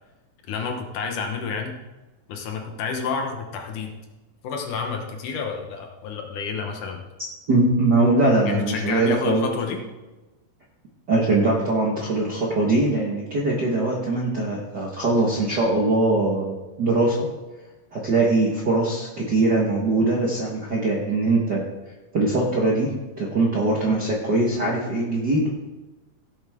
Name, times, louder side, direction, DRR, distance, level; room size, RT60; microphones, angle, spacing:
voice 1, 0.5-1.8 2.3-3.9 4.4-7.0 8.5-9.8, left 5 dB, 70° left, 3 dB, 2.5 m, -29 dB
voice 2, 7.5-9.5 11.1-17.2 17.9-21.6 22.1-25.5, right 2 dB, 50° right, -4 dB, 1.3 m, -21 dB
16.5 x 8.0 x 3.6 m, 1.1 s
omnidirectional pair, 4.0 m